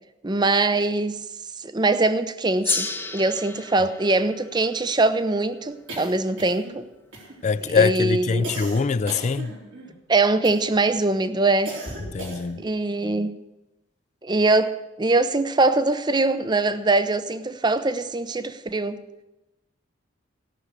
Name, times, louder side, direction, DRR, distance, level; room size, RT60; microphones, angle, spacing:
voice 1, 0.2-1.2 1.6-6.9 7.7-8.5 10.1-11.7 12.6-13.4 14.2-19.0, right 2 dB, 20° right, 0.6 m, -22 dB
Gong, 2.6-7.4, left 4 dB, 10° left, 1.0 m, -33 dB
sound 1, 5.9-6.8 7.1-7.6 8.4-9.9 10.4-10.9 11.7-12.7, right 1 dB, 75° right, 3.9 m, -37 dB
voice 2, 7.4-9.5 12.1-12.6, left 5 dB, 35° left, 0.3 m, -23 dB
16.5 x 6.4 x 8.2 m
head